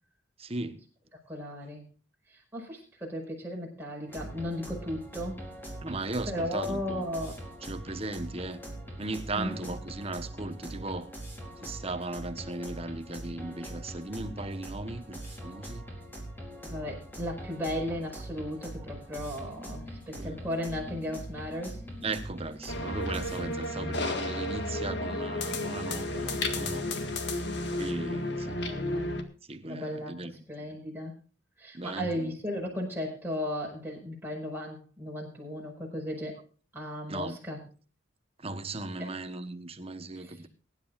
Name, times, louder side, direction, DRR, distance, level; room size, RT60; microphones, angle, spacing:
voice 1, 0.4-0.8 5.8-7.0 7.6-8.6 9.0-11.1 11.6-15.9 20.1-20.4 22.0-26.9 27.8-28.6 29.5-30.3 31.7-32.3 37.1-37.4 38.4-40.5, right 2 dB, 30° right, 1.2 m, -37 dB
voice 2, 1.3-1.8 2.3-5.4 6.3-7.3 9.3-9.6 16.6-21.8 28.1-28.2 28.5-29.1 29.6-30.2 30.5-31.2 31.6-36.4 36.7-37.6 40.1-40.5, left 1 dB, 10° right, 5.4 m, -36 dB
sound 1, 4.1-23.7, right 1 dB, 10° left, 4.5 m, -42 dB
sound 2, 22.7-29.2, left 2 dB, 60° left, 1.8 m, -32 dB
23.5 x 11.0 x 2.5 m
head